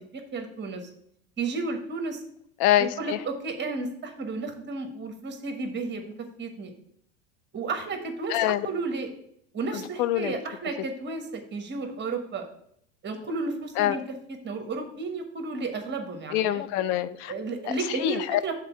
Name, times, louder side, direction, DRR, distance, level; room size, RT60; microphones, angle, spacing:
voice 1, 0.1-0.9 1.4-2.2 3.0-6.1 6.4-6.7 7.5-9.1 9.5-12.5 13.0-14.0 14.4-16.6 17.3-18.5, right 3 dB, 25° right, 5 dB, 1.3 m, -32 dB
voice 2, 2.6-3.2 8.3-8.7 9.7-10.4 13.8-14.0 16.3-17.3 17.7-18.4, left 13 dB, 60° left, 13 dB, 0.6 m, -25 dB
6.6 x 4.0 x 5.9 m, 0.71 s
hypercardioid pair, 95°, 39 cm